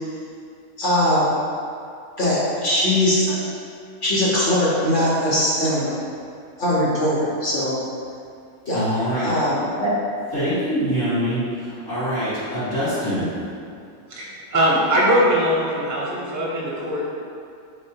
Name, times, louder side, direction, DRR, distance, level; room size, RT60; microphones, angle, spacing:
voice 1, 0.8-1.2 2.2-3.4 4.0-5.9 6.6-7.7 8.7-8.8 9.2-9.9, left 1 dB, 40° left, -7 dB, 0.9 m, -20 dB
voice 2, 8.7-9.3 10.3-13.3, equal, 60° left, -15 dB, 1.9 m, -24 dB
voice 3, 14.1-17.1, equal, 20° right, -6 dB, 0.4 m, -21 dB
4.1 x 3.6 x 2.8 m, 2.4 s
omnidirectional pair, 1.5 m